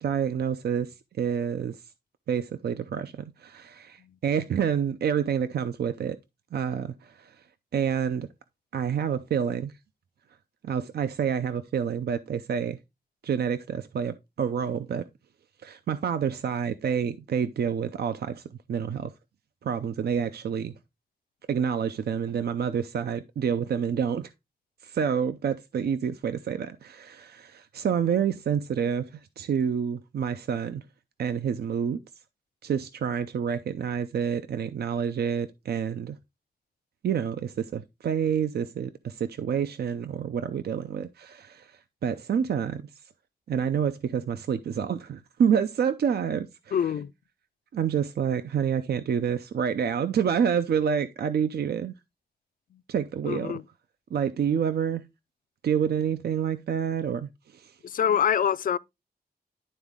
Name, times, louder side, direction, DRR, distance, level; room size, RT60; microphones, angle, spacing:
voice 1, 0.0-0.9 1.2-1.8 2.3-6.2 6.5-7.3 7.7-8.3 8.7-9.7 10.6-12.8 13.2-15.0 15.6-18.4 18.7-19.1 19.6-20.7 21.5-24.3 24.8-30.8 31.2-32.0 32.6-36.2 37.0-41.7 42.0-42.8 43.5-46.8 47.7-51.9 52.9-53.6 54.1-55.0 55.6-57.7, right 7 dB, 75° right, 0.5 m, -28 dB
voice 2, 46.7-47.1 52.7-52.8 53.2-53.6 57.8-58.8, left 8 dB, 55° left, 0.4 m, -25 dB
11.0 x 4.0 x 3.6 m
wide cardioid pair, 155°, 17 cm